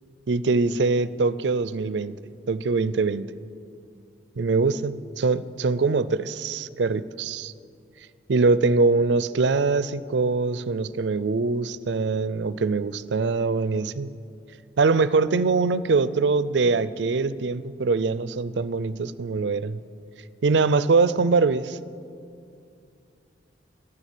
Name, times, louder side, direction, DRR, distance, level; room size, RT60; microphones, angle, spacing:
voice 1, 0.3-2.1 2.5-3.3 4.4-7.5 8.3-14.1 14.8-19.8 20.4-21.8, right 4 dB, 80° right, 16 dB, 0.5 m, -23 dB
11.5 x 11.5 x 8.3 m, 2.4 s
head